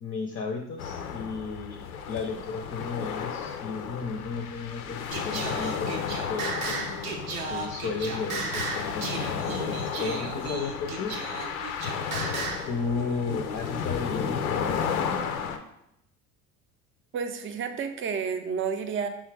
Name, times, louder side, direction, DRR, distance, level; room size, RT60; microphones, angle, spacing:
voice 1, 0.0-7.2 7.5-11.1 12.6-14.9, left 4 dB, 30° left, 4 dB, 0.5 m, -34 dB
sound 1, 0.8-15.6, left 7 dB, 85° left, 0.5 m, -33 dB
Singing, 5.1-12.7, right 4 dB, 90° right, 0.7 m, -34 dB
voice 2, 17.1-19.1, right 6 dB, 30° right, 8 dB, 0.5 m, -30 dB
5.3 x 2.4 x 3.3 m, 0.81 s
hypercardioid pair, 70°, 41 cm